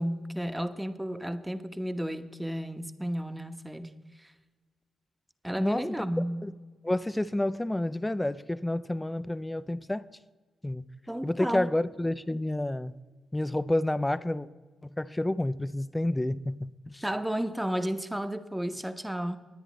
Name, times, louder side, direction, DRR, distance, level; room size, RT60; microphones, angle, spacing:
voice 1, 0.0-3.9 4.2-4.3 5.4-6.4 11.1-11.7 17.0-19.4, equal, 5° right, 9 dB, 1.0 m, -32 dB
voice 2, 5.6-6.1 6.4-6.5 6.8-10.1 10.6-10.8 11.2-12.9 13.3-14.5 14.8-17.0, left 1 dB, 15° left, 16 dB, 0.5 m, -29 dB
20.5 x 9.8 x 3.1 m, 1.3 s
hypercardioid pair, 40°, 0 cm